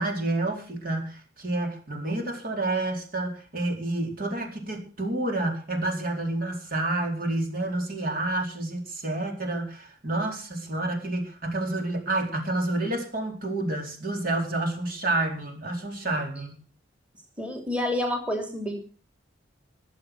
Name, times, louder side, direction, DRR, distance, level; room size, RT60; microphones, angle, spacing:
voice 1, 0.0-16.6, right 2 dB, 50° right, 2 dB, 4.3 m, -29 dB
voice 2, 17.4-18.8, left 1 dB, 5° right, 2 dB, 3.1 m, -29 dB
21.5 x 7.9 x 6.3 m, 0.40 s
head